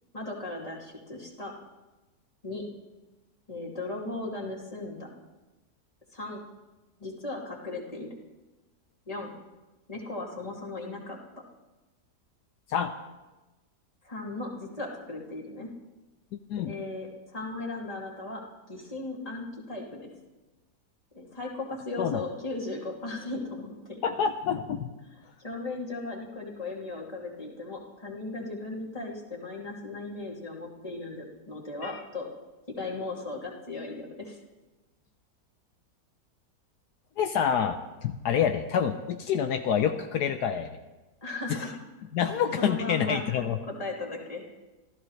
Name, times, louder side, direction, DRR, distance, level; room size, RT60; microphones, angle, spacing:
voice 1, 0.1-1.5 2.4-2.6 3.5-5.1 6.1-6.4 7.0-8.1 9.1-9.3 9.9-11.2 14.0-15.7 16.6-18.4 18.7-20.1 21.1-24.2 25.4-32.3 32.7-34.4 41.2-41.8 42.3-44.5, left 2 dB, 20° left, -2 dB, 2.7 m, -37 dB
voice 2, 24.0-24.9 31.8-32.0 37.2-37.8 38.0-40.7 41.5-41.7 42.1-43.6, left 8 dB, 75° left, 7 dB, 1.3 m, -27 dB
26.0 x 14.5 x 3.2 m, 1.1 s
omnidirectional pair, 1.8 m